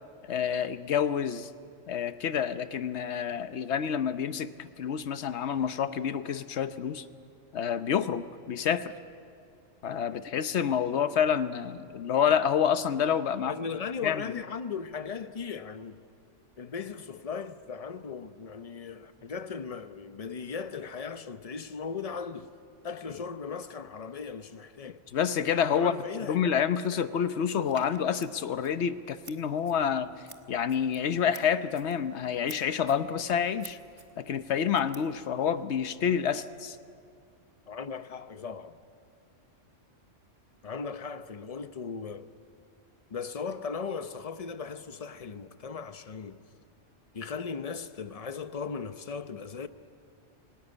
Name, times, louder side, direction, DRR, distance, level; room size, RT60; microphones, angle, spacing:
voice 1, 0.2-1.5 1.9-7.0 7.5-8.9 9.8-13.5 14.0-14.2 25.1-26.0 26.2-30.1 30.5-33.8 34.2-36.8, left 8 dB, 65° left, 1.1 m, -28 dB
voice 2, 13.5-16.0 16.6-22.5 22.8-25.0 25.7-26.5 26.9-27.1 37.7-38.8 40.6-42.3 43.1-46.4 47.1-49.7, left 5 dB, 35° left, 0.8 m, -37 dB
Scissors, 27.6-35.6, right 2 dB, 25° right, 1.3 m, -53 dB
26.5 x 17.0 x 9.8 m
omnidirectional pair, 1.3 m